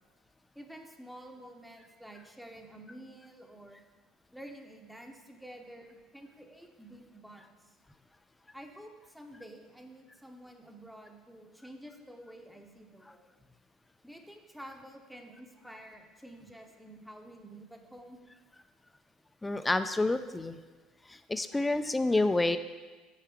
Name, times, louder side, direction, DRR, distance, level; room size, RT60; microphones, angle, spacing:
voice 1, 0.5-3.8 4.3-7.8 8.5-13.3 14.0-18.2, right 1 dB, ahead, 3 dB, 0.9 m, -50 dB
voice 2, 19.4-20.6 21.1-22.6, left 2 dB, 15° left, 11 dB, 0.4 m, -28 dB
6.7 x 4.7 x 4.7 m, 1.3 s
hypercardioid pair, 70°, 0 cm